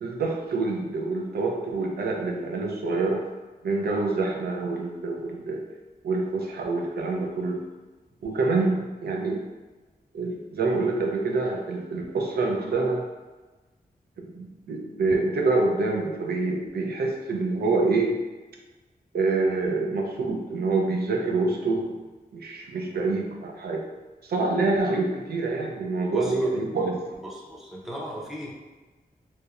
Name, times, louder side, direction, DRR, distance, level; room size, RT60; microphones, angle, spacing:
voice 1, 0.0-3.2 3.6-5.6 6.0-7.6 8.2-9.4 10.1-13.0 14.2-18.1 19.1-22.0 22.3-23.9 24.2-27.1, right 3 dB, 90° right, 1 dB, 0.4 m, -26 dB
voice 2, 26.1-26.5 27.2-28.5, equal, ahead, -4 dB, 0.4 m, -37 dB
2.9 x 2.0 x 2.3 m, 1.2 s
wide cardioid pair, 155°, 16 cm